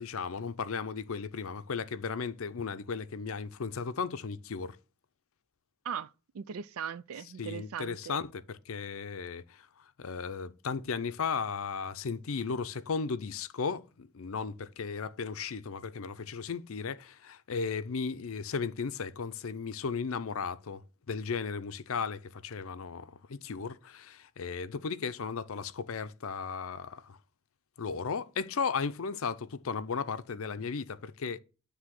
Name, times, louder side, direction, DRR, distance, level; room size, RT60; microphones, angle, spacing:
voice 1, 0.0-4.8 7.4-9.7 10.0-20.8 21.1-27.2 27.8-31.4, left 5 dB, 65° left, 0.5 m, -35 dB
voice 2, 5.8-8.2, right 7 dB, 75° right, 0.4 m, -39 dB
9.7 x 3.4 x 6.4 m
head